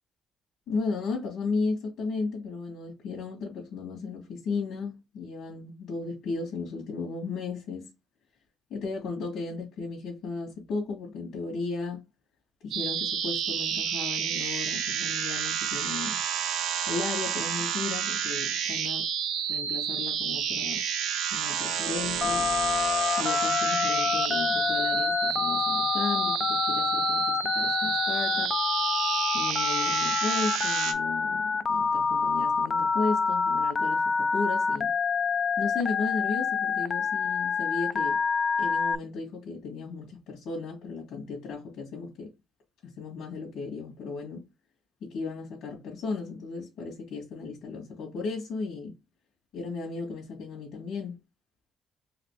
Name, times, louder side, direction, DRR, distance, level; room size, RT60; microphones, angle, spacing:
voice 1, 0.7-7.9 8.7-12.0 12.6-16.2 16.9-19.1 19.5-20.8 21.3-22.5 23.2-28.6 29.3-35.0 35.6-38.2 38.6-42.3 42.8-44.5 45.0-48.9 49.5-51.2, left 4 dB, 80° left, 1.9 m, -35 dB
sound 1, 12.7-30.9, right 8 dB, 90° right, 0.8 m, -30 dB
Telephone, 22.2-39.0, left 5 dB, 45° left, 0.4 m, -27 dB
4.1 x 3.0 x 3.2 m
cardioid pair, 90°, 0 cm